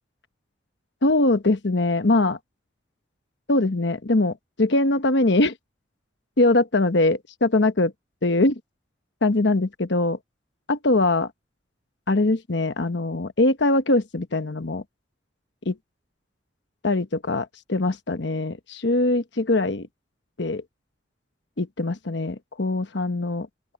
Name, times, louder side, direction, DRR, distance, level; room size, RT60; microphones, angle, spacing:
voice 1, 1.0-2.4 3.5-5.5 6.4-7.9 8.2-8.6 9.2-10.2 10.7-11.3 12.1-14.8 15.6-15.8 16.8-19.9 20.4-20.6 21.6-23.5, left 2 dB, 60° left, 1.1 m, -22 dB
open air
head